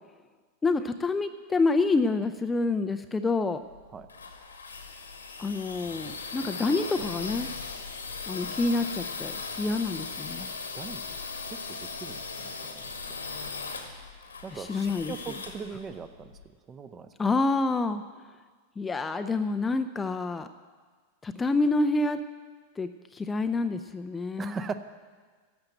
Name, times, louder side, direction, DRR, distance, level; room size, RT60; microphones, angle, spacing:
voice 1, 0.6-3.6 5.4-7.5 8.3-10.5 14.5-15.1 17.2-18.0 18.8-20.5 21.2-22.2 22.8-24.6, left 3 dB, 15° left, 9 dB, 0.5 m, -27 dB
sound 1, 3.7-16.4, left 4 dB, 75° left, 1.3 m, -38 dB
voice 2, 11.5-12.9 14.4-16.4 16.7-17.1 24.4-24.8, right 5 dB, 20° right, 11 dB, 0.7 m, -39 dB
11.5 x 7.8 x 9.3 m, 1.5 s
figure-of-eight pair, 90°, 0 cm